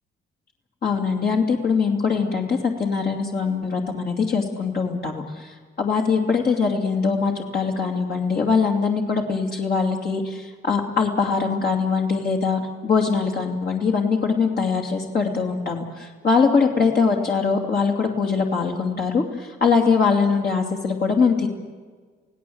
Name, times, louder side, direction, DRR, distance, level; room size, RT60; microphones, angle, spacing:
voice 1, 0.8-21.5, left 5 dB, 50° left, 0 dB, 2.7 m, -22 dB
28.0 x 17.5 x 7.9 m, 1.5 s
cardioid pair, 90°, 20 cm